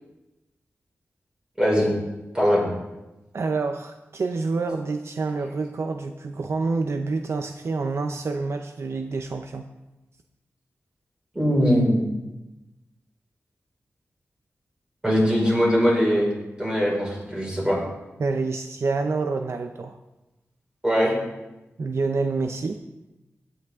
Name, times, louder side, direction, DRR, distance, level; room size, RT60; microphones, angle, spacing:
voice 1, 1.6-1.9 2.3-2.6 11.3-12.0 15.0-16.3 16.6-17.8 20.8-21.1, equal, 15° right, -3 dB, 5.1 m, -21 dB
voice 2, 3.3-9.6 18.2-20.0 21.8-22.8, right 3 dB, 65° right, 5 dB, 0.6 m, -27 dB
16.0 x 9.2 x 3.7 m, 1.0 s
wide cardioid pair, 85°, 5 cm